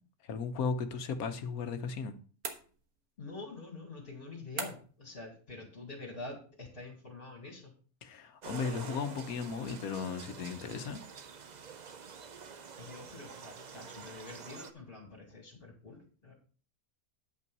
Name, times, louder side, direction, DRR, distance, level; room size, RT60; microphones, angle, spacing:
voice 1, 0.3-2.1 8.0-11.0, left 5 dB, 75° left, 9 dB, 1.3 m, -36 dB
sound 1, 2.4-3.2 4.6-5.1, right 5 dB, 75° right, 1.7 m, -41 dB
voice 2, 3.2-7.7 12.8-16.3, left 2 dB, 40° left, -2 dB, 2.3 m, -46 dB
sound 2, 8.4-14.7, right 6 dB, 45° right, 0.6 m, -47 dB
9.7 x 5.5 x 5.4 m, 0.40 s
omnidirectional pair, 1.5 m